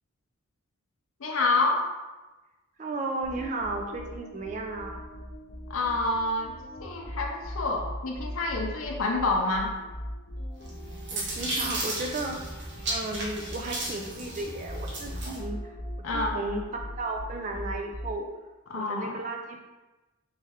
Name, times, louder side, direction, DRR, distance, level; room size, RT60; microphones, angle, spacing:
voice 1, 1.2-1.9 5.7-9.7 16.0-16.4 18.7-19.2, left 2 dB, 80° left, 0 dB, 0.5 m, -28 dB
voice 2, 2.8-5.0 11.1-12.4 12.9-16.6 17.0-18.3 18.7-19.6, right 2 dB, 35° right, 3 dB, 0.3 m, -34 dB
sound 1, 3.2-18.4, equal, 45° left, 0.7 m, -40 dB
sound 2, 10.7-15.4, right 2 dB, 55° right, 0.9 m, -34 dB
3.4 x 3.2 x 3.4 m, 1.1 s
head